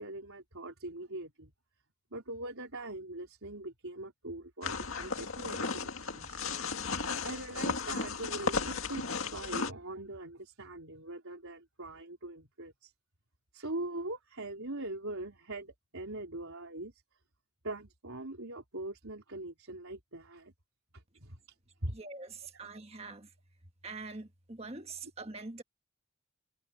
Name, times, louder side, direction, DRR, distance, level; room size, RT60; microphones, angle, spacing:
voice 1, 0.0-1.5 2.1-6.4 6.7-6.9 7.2-12.9 13.5-17.0 17.6-20.5 20.9-21.4 21.8-22.0, right 2 dB, 80° right, 4.2 m, -42 dB
sound 1, 4.6-9.7, left 4 dB, 75° left, 1.9 m, -35 dB
voice 2, 21.9-23.3 23.8-25.6, right 3 dB, 30° right, 1.5 m, -44 dB
head